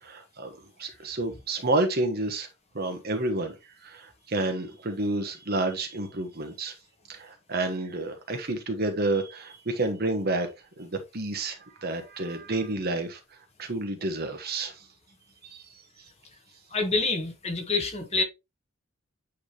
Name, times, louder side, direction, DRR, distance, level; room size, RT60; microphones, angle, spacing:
voice 1, 0.0-2.5 2.7-3.5 3.8-6.8 7.1-10.5 10.8-13.2 13.6-14.9 15.4-15.7, right 2 dB, 45° right, 1.2 m, -30 dB
voice 2, 16.7-18.2, left 3 dB, 30° left, 1.5 m, -27 dB
8.9 x 3.6 x 3.1 m
head